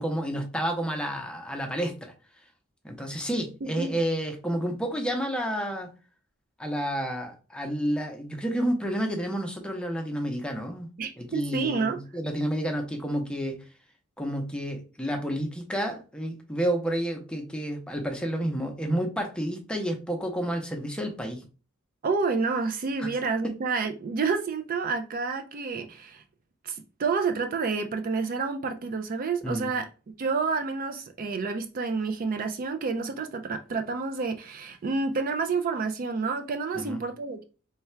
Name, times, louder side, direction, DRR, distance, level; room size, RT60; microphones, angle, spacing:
voice 1, 0.0-2.1 2.8-5.9 6.6-10.9 11.2-13.6 14.2-21.4 23.0-23.1 29.4-29.7 36.7-37.0, equal, 5° left, 0.6 m, -30 dB
voice 2, 3.6-4.0 11.0-12.0 22.0-26.2 26.6-29.8 30.2-37.4, right 4 dB, 40° right, 0.3 m, -29 dB
3.2 x 2.3 x 4.3 m
head